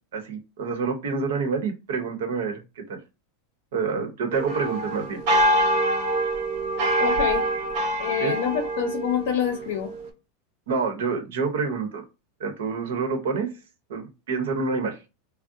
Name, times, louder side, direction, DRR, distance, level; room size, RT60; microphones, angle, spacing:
voice 1, 0.1-3.0 3.7-5.2 8.2-8.3 10.7-12.0 12.4-13.5 13.9-15.0, right 4 dB, 85° right, 5 dB, 0.9 m, -27 dB
sound 1, 4.3-10.1, right 1 dB, 50° right, 0.9 m, -25 dB
voice 2, 7.0-7.4 8.0-9.9, left 8 dB, 65° left, 5 dB, 0.6 m, -26 dB
2.6 x 2.0 x 3.7 m, 0.28 s
supercardioid pair, 165°, 0 cm